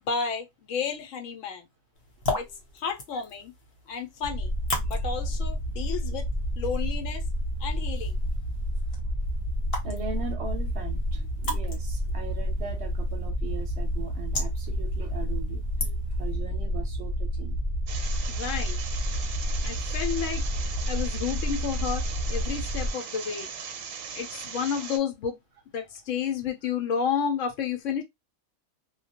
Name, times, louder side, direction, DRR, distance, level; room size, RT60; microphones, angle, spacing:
voice 1, 0.0-1.7 2.3-2.5 2.7-3.5 3.9-4.5 4.8-6.3 6.6-7.2 7.6-8.2 18.3-18.8 19.6-20.4 20.9-23.5 24.1-25.4 25.7-28.0, left 7 dB, 75° left, 1.0 m, -31 dB
sound 1, 1.9-16.3, left 2 dB, 50° left, 1.0 m, -39 dB
sound 2, 4.2-22.9, equal, 35° right, 0.4 m, -30 dB
voice 2, 9.8-15.6 16.2-17.6, right 5 dB, 65° right, 0.8 m, -39 dB
sound 3, 17.9-25.0, right 6 dB, 85° right, 1.0 m, -39 dB
2.3 x 2.2 x 2.8 m
omnidirectional pair, 1.4 m